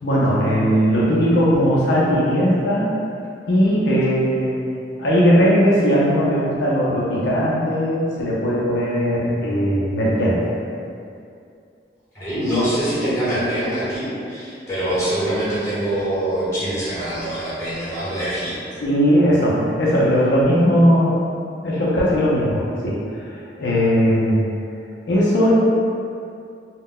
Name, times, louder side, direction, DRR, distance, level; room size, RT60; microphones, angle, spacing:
voice 1, 0.0-2.9 3.4-4.6 5.0-10.4 18.8-21.3 21.6-24.5 25.1-25.6, equal, 80° left, -6 dB, 0.5 m, -18 dB
voice 2, 12.1-18.5, right 1 dB, 15° left, -11 dB, 1.0 m, -24 dB
2.2 x 2.1 x 3.7 m, 2.5 s
head